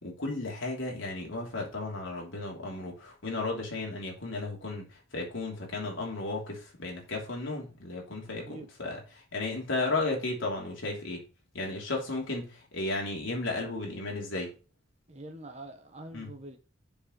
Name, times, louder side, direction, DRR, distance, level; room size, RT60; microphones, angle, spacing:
voice 1, 0.0-4.9 5.1-11.2 11.5-14.5 16.1-16.3, left 2 dB, 80° left, 3.1 m, -34 dB
voice 2, 8.2-8.7 15.1-16.6, right 1 dB, 35° right, 1.4 m, -45 dB
7.1 x 4.8 x 6.3 m
head